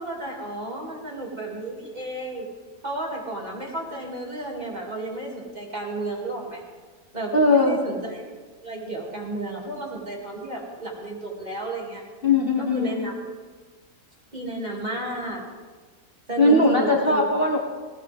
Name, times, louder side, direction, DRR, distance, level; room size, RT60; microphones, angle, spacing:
voice 1, 0.0-2.5 2.8-6.6 7.1-8.2 8.6-12.0 12.6-13.1 14.3-15.4 16.3-17.3, right 2 dB, 25° right, -3 dB, 2.8 m, -32 dB
voice 2, 7.3-7.8 12.2-13.0 16.4-17.6, left 2 dB, 35° left, 0 dB, 1.3 m, -19 dB
19.5 x 17.0 x 3.6 m, 1.4 s
omnidirectional pair, 1.8 m